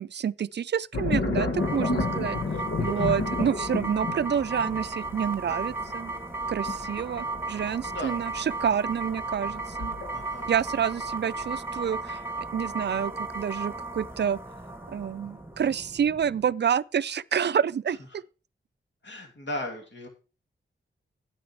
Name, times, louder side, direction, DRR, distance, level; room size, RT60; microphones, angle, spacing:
voice 1, 0.0-2.4 2.8-6.1 6.5-9.9 10.5-12.2 12.5-14.4 14.9-18.2, right 8 dB, 60° right, 0.4 m, -28 dB
sound 1, 0.9-10.6 11.0-11.5, left 3 dB, 80° left, 1.5 m, -31 dB
sound 2, 1.6-16.5, right 3 dB, 10° right, 1.2 m, -35 dB
voice 2, 2.8-3.1 6.7-7.0 7.8-8.1 10.1-10.5 19.0-20.1, left 1 dB, 65° left, 2.8 m, -37 dB
9.4 x 8.7 x 4.5 m
cardioid pair, 50°, 21 cm